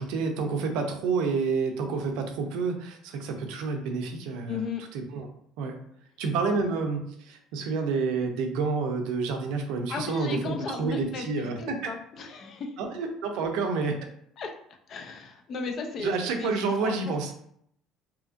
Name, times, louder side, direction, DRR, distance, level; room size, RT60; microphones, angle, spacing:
voice 1, 0.0-4.5 4.9-5.3 5.6-5.8 6.2-11.9 12.8-14.0 16.0-17.3, right 4 dB, 75° right, 4 dB, 0.5 m, -29 dB
voice 2, 4.5-4.8 9.9-12.7 14.4-14.5 14.9-17.3, left 4 dB, 35° left, 4 dB, 0.3 m, -35 dB
2.8 x 2.4 x 2.5 m, 0.67 s
cardioid pair, 175°, 0 cm